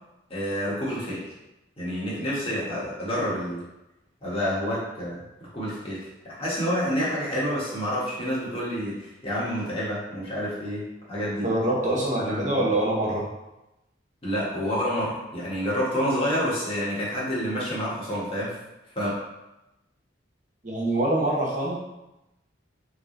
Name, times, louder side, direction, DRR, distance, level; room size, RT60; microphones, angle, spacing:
voice 1, 0.3-1.2 1.8-3.6 4.2-11.5 12.2-12.6 14.2-18.5 19.0-19.1, equal, 30° left, -7 dB, 1.6 m, -28 dB
voice 2, 11.4-13.3 20.6-21.8, right 1 dB, 40° right, -4 dB, 1.3 m, -25 dB
3.9 x 3.5 x 3.9 m, 0.95 s
head